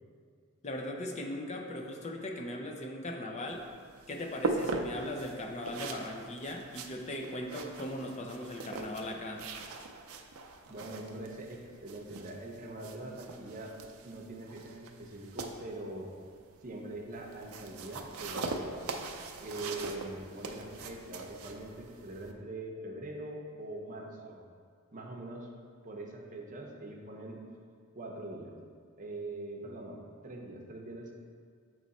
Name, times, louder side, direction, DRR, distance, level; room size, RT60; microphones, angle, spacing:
voice 1, 0.6-3.6 4.1-9.4, left 1 dB, 35° left, 2 dB, 0.6 m, -39 dB
sound 1, 3.5-22.3, right 3 dB, 80° right, 0.5 m, -41 dB
voice 2, 10.7-13.7 14.0-16.1 16.6-18.8 19.4-24.4 24.9-25.5 25.8-27.4 27.9-28.5 29.0-31.1, right 2 dB, 40° right, 0 dB, 0.7 m, -43 dB
7.6 x 3.1 x 4.0 m, 2.1 s
head